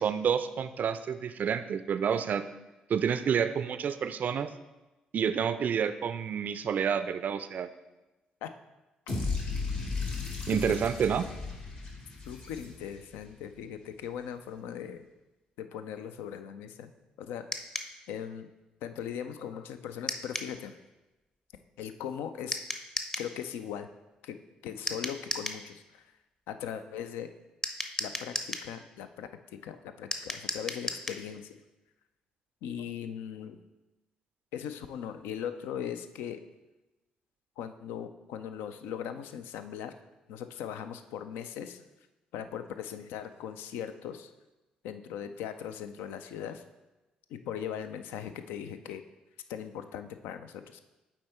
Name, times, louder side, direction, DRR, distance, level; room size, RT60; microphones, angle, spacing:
voice 1, 0.0-2.4 2.9-4.5 5.1-7.7 10.5-11.3, right 7 dB, 50° right, 11 dB, 0.4 m, -29 dB
sound 1, 9.1-13.2, left 4 dB, 50° left, 2.3 m, -35 dB
voice 2, 12.3-15.1 15.6-16.9 17.2-17.7 18.1-18.5 18.8-20.8 21.8-22.6 23.2-23.9 24.2-24.4 24.6-26.0 26.5-27.3 28.0-29.3 29.6-31.6 32.6-33.6 34.5-36.4 37.6-39.9 40.3-41.8 42.3-44.3 44.8-46.6 47.3-49.0 49.5-50.8, left 9 dB, 70° left, 9 dB, 0.4 m, -39 dB
sound 2, 17.5-17.9 20.1-20.5 22.5-23.3 24.9-25.6 27.6-28.7 30.1-31.2, left 1 dB, 15° left, 0.8 m, -35 dB
7.4 x 4.5 x 4.3 m, 1.1 s
figure-of-eight pair, 45°, 4 cm